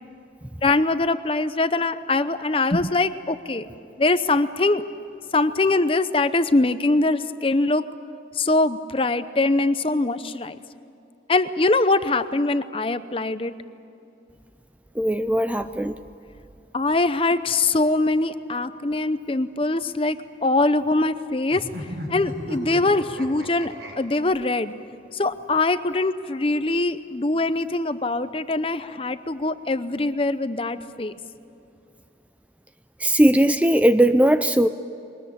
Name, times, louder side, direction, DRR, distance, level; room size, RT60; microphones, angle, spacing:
voice 1, 0.6-3.7 4.0-4.8 5.3-7.9 8.3-10.6 11.3-13.6 16.7-20.2 20.4-24.7 25.1-31.1, left 2 dB, 30° left, 12 dB, 0.7 m, -23 dB
voice 2, 15.0-15.9 33.0-34.7, right 1 dB, 10° right, 10 dB, 0.4 m, -18 dB
sound 1, 21.5-23.9, equal, 80° right, 6.0 m, -34 dB
22.5 x 20.0 x 8.6 m, 2.8 s
head